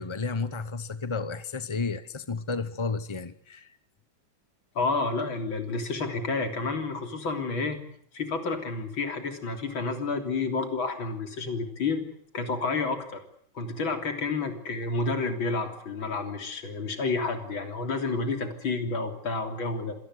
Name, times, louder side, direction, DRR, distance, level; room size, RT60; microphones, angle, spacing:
voice 1, 0.0-3.7, left 4 dB, 35° left, 13 dB, 0.4 m, -32 dB
voice 2, 4.8-7.8 8.1-12.0 12.3-13.2 13.6-20.0, left 3 dB, 75° left, 6 dB, 4.1 m, -30 dB
26.0 x 19.0 x 8.0 m, 0.64 s
omnidirectional pair, 2.2 m